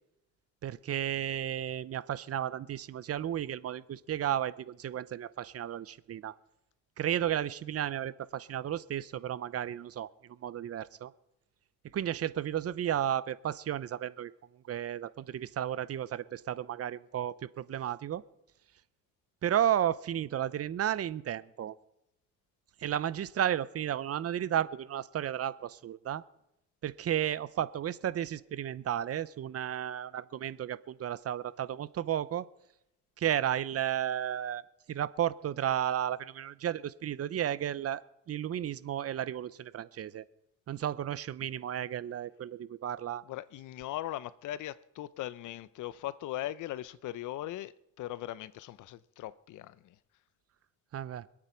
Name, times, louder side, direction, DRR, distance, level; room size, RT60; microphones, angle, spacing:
voice 1, 0.6-6.3 7.0-11.1 11.9-14.3 14.7-18.2 19.4-21.8 22.8-26.2 26.8-32.5 33.2-34.6 34.9-40.2 40.7-43.2 50.9-51.2, right 10 dB, 50° right, 0.7 m, -33 dB
voice 2, 43.3-49.9, left 14 dB, 80° left, 0.7 m, -39 dB
25.5 x 8.8 x 4.4 m
cardioid pair, 90°, 30 cm